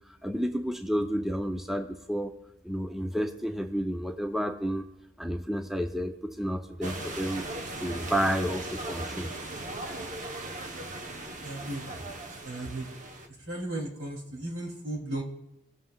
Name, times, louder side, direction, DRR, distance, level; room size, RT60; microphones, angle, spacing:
voice 1, 0.2-2.3 2.6-4.9 5.2-7.5 7.8-9.3, equal, ahead, 5 dB, 0.4 m, -30 dB
sound 1, 6.8-13.3, right 2 dB, 35° right, 0.8 m, -38 dB
voice 2, 11.4-11.8 12.4-12.9 13.5-15.2, right 1 dB, 85° right, -1 dB, 2.7 m, -35 dB
18.5 x 7.5 x 2.3 m, 0.90 s
head